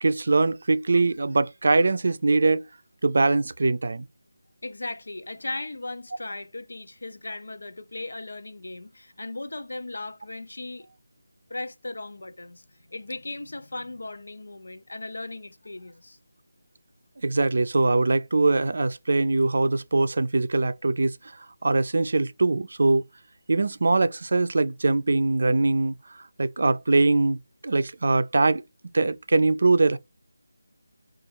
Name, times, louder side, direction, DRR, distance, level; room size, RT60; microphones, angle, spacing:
voice 1, 0.0-2.7 3.0-4.1 17.2-23.0 23.5-28.6 28.9-30.0, right 3 dB, 55° right, 0.4 m, -22 dB
voice 2, 4.6-10.9 11.5-16.2, left 2 dB, 75° left, 0.6 m, -37 dB
3.8 x 2.4 x 3.0 m
figure-of-eight pair, 175°, 0 cm